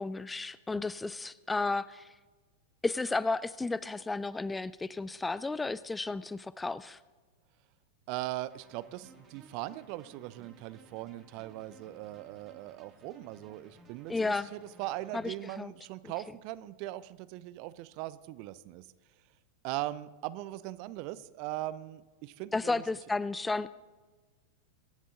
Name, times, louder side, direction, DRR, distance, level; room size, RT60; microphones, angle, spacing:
voice 1, 0.0-2.1 2.8-7.0 14.1-14.5 15.1-15.7 22.5-23.7, left 3 dB, 10° left, 18 dB, 0.4 m, -33 dB
voice 2, 8.1-18.9 19.6-22.8, right 16 dB, 45° right, 16 dB, 0.6 m, -40 dB
sound 1, 8.5-15.4, right 4 dB, 25° right, 3.2 m, -58 dB
23.0 x 11.0 x 3.8 m, 1.3 s
figure-of-eight pair, 90°, 0 cm